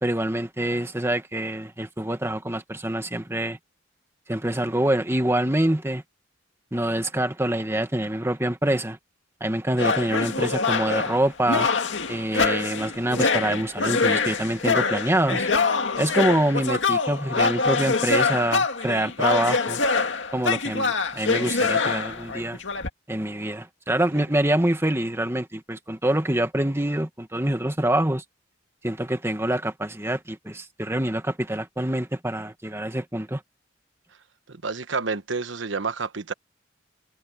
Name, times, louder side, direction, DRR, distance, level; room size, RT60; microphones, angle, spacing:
voice 1, 0.0-3.6 4.3-6.0 6.7-9.0 9.4-11.7 12.1-15.5 16.0-19.8 20.3-22.6 23.1-28.2 28.8-33.4, right 1 dB, 15° right, 1.8 m, -25 dB
sound 1, 9.8-22.9, left 4 dB, 70° left, 2.2 m, -24 dB
voice 2, 34.5-36.3, right 4 dB, 80° right, 1.2 m, -29 dB
head